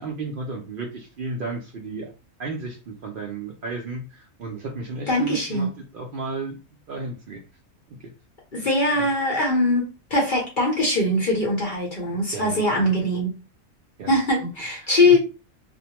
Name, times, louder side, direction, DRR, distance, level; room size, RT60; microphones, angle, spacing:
voice 1, 0.0-2.1 2.4-6.6 6.9-7.4 7.9-8.1 8.6-8.7 9.0-9.1 12.3-12.9 14.0-14.5 14.8-15.2, right 3 dB, 80° right, 0.4 m, -34 dB
voice 2, 5.1-5.7 8.5-13.3 14.1-15.2, left 1 dB, 45° left, 0.8 m, -21 dB
2.5 x 2.1 x 2.8 m
omnidirectional pair, 1.5 m